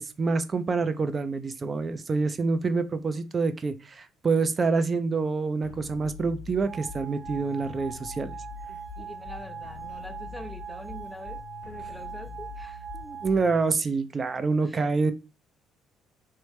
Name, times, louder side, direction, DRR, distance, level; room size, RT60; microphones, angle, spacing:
voice 1, 0.0-8.4 12.9-15.1, right 4 dB, 35° right, 0.5 m, -27 dB
sound 1, 5.6-13.6, left 5 dB, 75° left, 0.4 m, -44 dB
sound 2, 6.7-13.3, right 7 dB, 65° right, 1.5 m, -41 dB
voice 2, 8.7-12.9 14.6-14.9, left 1 dB, 5° left, 0.7 m, -44 dB
3.1 x 3.1 x 3.2 m
hypercardioid pair, 60°, 0 cm